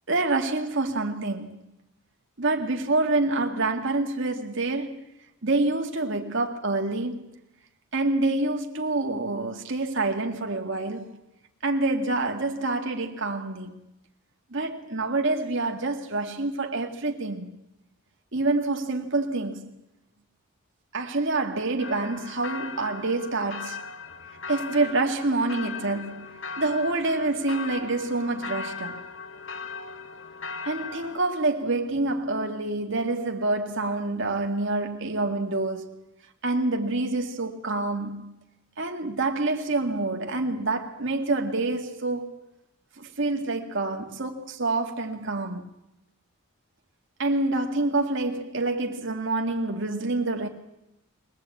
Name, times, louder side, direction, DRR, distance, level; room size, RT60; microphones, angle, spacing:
voice 1, 0.1-1.6 2.4-5.0 5.4-7.2 7.9-11.2 11.6-13.8 14.5-17.5 18.3-19.7 20.9-23.8 24.5-29.0 30.6-36.0 36.4-38.3 38.8-42.4 43.0-45.7 47.2-50.5, right 2 dB, 55° right, 2.0 m, -27 dB
sound 1, 21.8-31.2, left 5 dB, 55° left, 1.1 m, -38 dB
23.0 x 19.5 x 8.5 m
head